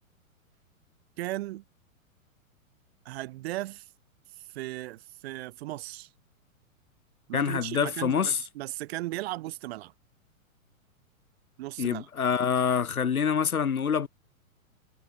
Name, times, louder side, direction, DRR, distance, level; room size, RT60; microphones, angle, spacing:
voice 1, 1.2-1.6 3.0-3.9 4.4-6.1 7.3-9.9 11.6-12.1, right 17 dB, 45° right, 0.9 m, -36 dB
voice 2, 7.3-8.4 11.8-14.1, left 7 dB, 90° left, 1.2 m, -26 dB
hypercardioid pair, 115°, 42 cm